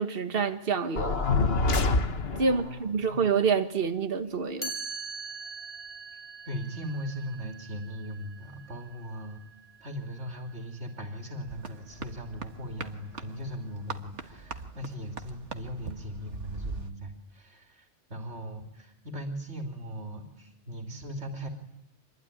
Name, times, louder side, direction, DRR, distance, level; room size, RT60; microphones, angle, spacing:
voice 1, 0.0-1.3 2.4-4.7, right 5 dB, 55° right, 1.6 m, -27 dB
sound 1, 1.0-2.6, left 3 dB, 60° left, 1.7 m, -25 dB
voice 2, 2.5-3.3 6.4-9.4 9.8-21.5, equal, 70° right, 3.4 m, -39 dB
Chime, 4.6-10.5, right 3 dB, 10° left, 3.2 m, -42 dB
sound 2, 11.5-16.9, right 4 dB, 90° right, 1.9 m, -41 dB
26.0 x 21.5 x 9.9 m
omnidirectional pair, 1.2 m